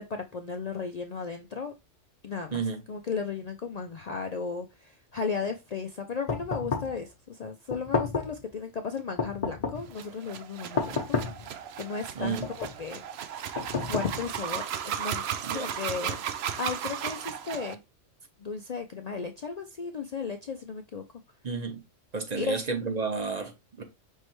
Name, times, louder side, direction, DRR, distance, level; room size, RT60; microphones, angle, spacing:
voice 1, 0.0-1.7 2.2-2.6 2.9-11.2 11.8-13.0 13.8-15.2 15.5-16.2 16.6-17.8 18.4-21.0 22.3-22.6, left 5 dB, 55° left, 0.4 m, -35 dB
voice 2, 2.5-2.8 12.1-12.5 15.4-15.7 21.4-21.8 22.1-23.8, right 4 dB, 40° right, 0.9 m, -31 dB
sound 1, 6.3-7.0 7.7-8.4 9.2-9.9 10.8-11.5 12.2-12.8 13.5-14.4, left 4 dB, 35° left, 0.8 m, -31 dB
sound 2, 9.9-17.7, right 9 dB, 65° right, 0.8 m, -35 dB
5.5 x 3.2 x 3.0 m
omnidirectional pair, 1.2 m